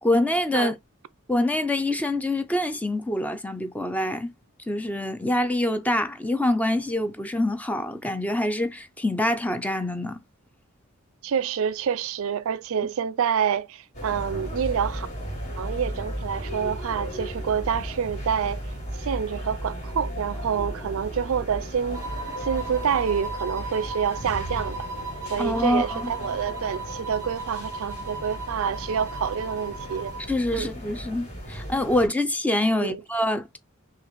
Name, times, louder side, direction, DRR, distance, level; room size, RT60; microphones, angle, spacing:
voice 1, 0.0-0.7 1.3-4.3 4.7-10.2 25.4-26.1 30.3-33.6, left 1 dB, 5° left, 0.5 m, -25 dB
voice 2, 11.2-15.1 15.6-18.6 18.9-22.1 22.4-24.9 25.3-30.1 30.5-30.7 32.8-33.0, right 7 dB, 70° right, 0.4 m, -27 dB
sound 1, 13.9-32.1, equal, 35° left, 2.4 m, -35 dB
sound 2, 21.9-30.3, right 3 dB, 15° right, 1.1 m, -37 dB
5.9 x 2.4 x 3.1 m
head